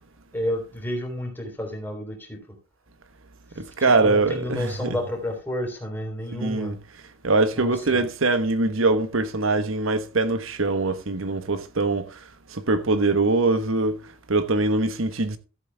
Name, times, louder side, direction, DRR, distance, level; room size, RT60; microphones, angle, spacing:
voice 1, 0.3-2.4 3.8-6.7 7.5-8.1, left 1 dB, 10° left, 3.5 m, -31 dB
voice 2, 3.6-5.0 6.3-6.8 7.2-12.2 12.5-15.4, right 3 dB, 80° right, 1.2 m, -23 dB
14.0 x 7.9 x 3.4 m
head